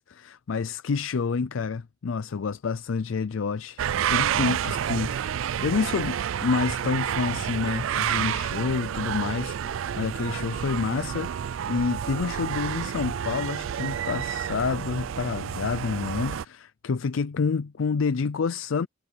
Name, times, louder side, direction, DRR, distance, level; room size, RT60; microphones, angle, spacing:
voice 1, 0.2-3.8 4.1-18.9, left 5 dB, 80° left, 0.5 m, -28 dB
sound 1, 3.8-16.5, right 9 dB, 80° right, 0.4 m, -29 dB
head